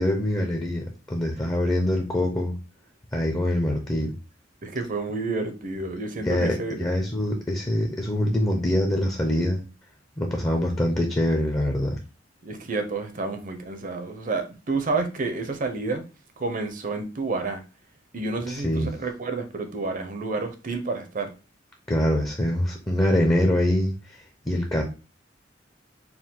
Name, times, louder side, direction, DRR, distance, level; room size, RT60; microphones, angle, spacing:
voice 1, 0.0-2.6 3.1-4.2 6.2-9.6 10.2-12.0 18.5-18.9 21.9-23.9 24.5-24.8, left 1 dB, 15° left, 0.6 m, -24 dB
voice 2, 4.6-6.9 12.4-16.0 16.4-17.6 18.1-21.3, right 3 dB, 45° right, 0.7 m, -30 dB
4.6 x 2.3 x 3.7 m
head